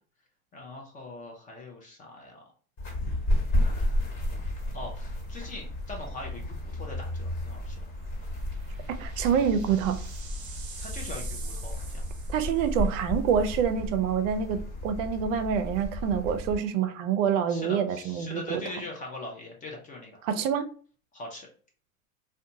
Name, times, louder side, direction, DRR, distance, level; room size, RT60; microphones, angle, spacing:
voice 1, 0.5-2.4 4.7-7.8 10.8-12.0 17.5-20.2 21.1-21.5, left 2 dB, 20° left, 0.4 m, -41 dB
sound 1, 2.8-16.6, left 1 dB, 40° left, 1.3 m, -32 dB
sound 2, 6.2-6.3 6.7-6.8 8.2-12.9, right 5 dB, 35° right, 0.8 m, -46 dB
voice 2, 8.9-10.0 12.3-18.6 20.2-20.7, right 7 dB, 65° right, 0.5 m, -26 dB
2.6 x 2.2 x 2.6 m
hypercardioid pair, 115°, 42 cm